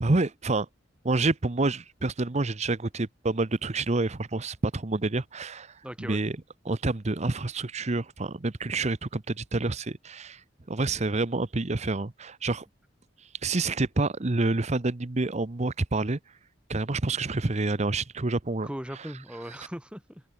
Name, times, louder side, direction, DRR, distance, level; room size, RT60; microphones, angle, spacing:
voice 1, 0.0-0.7 1.0-6.4 6.7-10.4 10.7-12.6 13.4-16.2 16.7-18.7, right 2 dB, 35° right, 0.9 m, -28 dB
voice 2, 5.8-6.2 10.9-11.0 18.6-20.2, equal, 5° right, 5.8 m, -39 dB
head